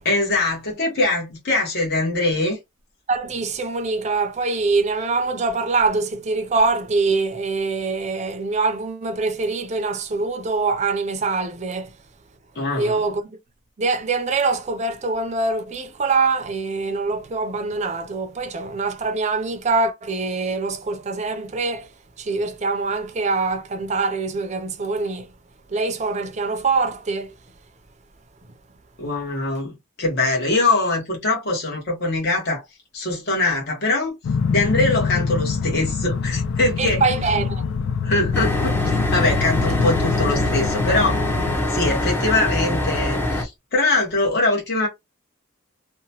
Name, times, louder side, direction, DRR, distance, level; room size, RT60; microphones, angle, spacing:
voice 1, 0.0-2.6 12.5-13.0 29.0-32.6 32.9-34.1 34.5-37.0 38.0-41.2 41.7-44.9, left 2 dB, 50° left, 1.1 m, -22 dB
voice 2, 3.1-11.9 12.8-13.3 13.8-21.9 22.2-25.3 25.7-27.3 36.8-37.7, right 3 dB, 35° right, 0.5 m, -24 dB
sound 1, 34.2-41.6, left 5 dB, 70° left, 0.3 m, -25 dB
sound 2, 38.3-43.4, left 1 dB, 10° left, 0.6 m, -23 dB
2.8 x 2.2 x 2.8 m
head